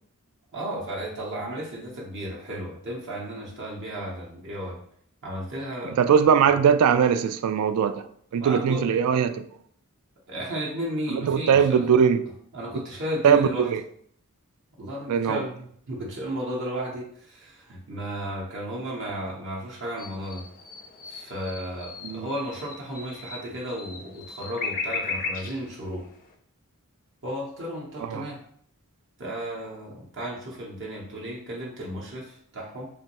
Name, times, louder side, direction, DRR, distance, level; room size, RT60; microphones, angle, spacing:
voice 1, 0.5-4.8 5.2-6.0 8.4-8.8 10.3-12.0 12.5-13.7 14.8-20.4 21.1-26.0 27.2-28.4 29.2-32.9, equal, 55° right, 0.7 m, -34 dB
voice 2, 5.9-8.0 8.3-9.4 11.2-12.2 13.2-13.8 15.1-15.5 22.0-22.3 28.0-28.3, right 7 dB, 75° right, 0.3 m, -20 dB
sound 1, 20.0-26.3, left 4 dB, 40° left, 0.5 m, -37 dB
3.4 x 3.0 x 2.9 m
head